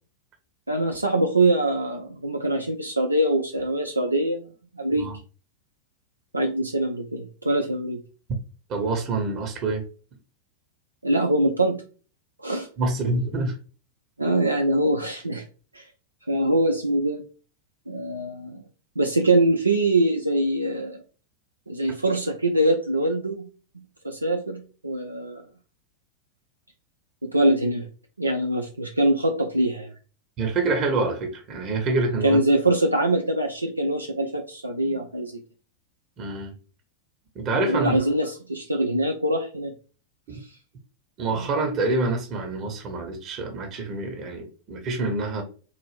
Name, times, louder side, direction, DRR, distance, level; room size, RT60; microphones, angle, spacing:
voice 1, 0.7-4.5 4.7-5.1 6.3-8.0 11.0-11.8 12.4-12.7 14.2-15.4 15.7-15.9 16.3-17.2 17.9-18.6 19.0-21.0 21.7-23.5 24.0-25.4 27.2-27.9 28.2-29.9 32.2-35.4 37.7-39.7 41.3-41.5, right 1 dB, 80° right, 0.4 m, -23 dB
voice 2, 8.7-9.8 12.8-13.6 30.4-32.4 36.2-36.5 37.3-38.0 41.2-45.4, right 3 dB, 35° right, 1.0 m, -26 dB
3.9 x 2.5 x 3.2 m
figure-of-eight pair, 90°, 0 cm